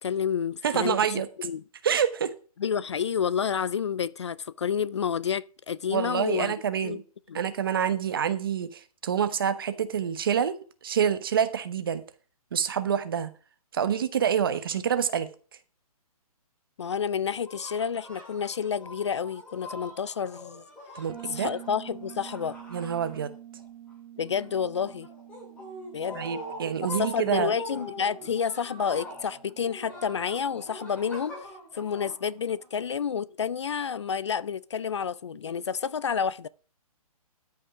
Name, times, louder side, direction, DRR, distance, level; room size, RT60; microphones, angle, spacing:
voice 1, 0.0-1.0 1.4-1.6 2.6-6.5 6.8-7.0 7.3-7.4 16.8-20.6 21.3-22.6 24.2-25.1 25.9-26.2 27.0-31.3 31.7-36.5, left 7 dB, 50° left, 0.4 m, -29 dB
voice 2, 0.6-1.3 1.8-2.3 5.9-7.0 7.3-12.0 12.5-13.3 13.7-15.3 20.9-21.5 22.7-23.3 26.1-27.5, right 8 dB, 35° right, 0.9 m, -27 dB
sound 1, 17.4-23.6 23.9-32.9, equal, 5° left, 2.4 m, -43 dB
Bass guitar, 21.1-30.8, right 11 dB, 85° right, 3.1 m, -48 dB
13.0 x 5.7 x 4.9 m
hypercardioid pair, 175°, 19 cm